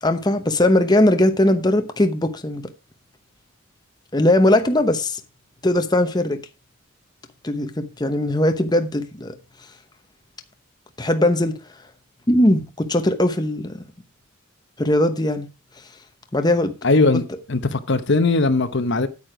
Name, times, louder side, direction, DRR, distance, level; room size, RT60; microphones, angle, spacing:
voice 1, 0.0-2.7 4.1-5.2 5.6-6.4 7.4-9.3 11.0-11.5 12.3-13.8 14.8-15.5 16.3-16.7, left 1 dB, 20° left, 0.9 m, -19 dB
voice 2, 16.8-19.1, left 3 dB, 55° left, 0.9 m, -19 dB
9.1 x 8.6 x 4.8 m
head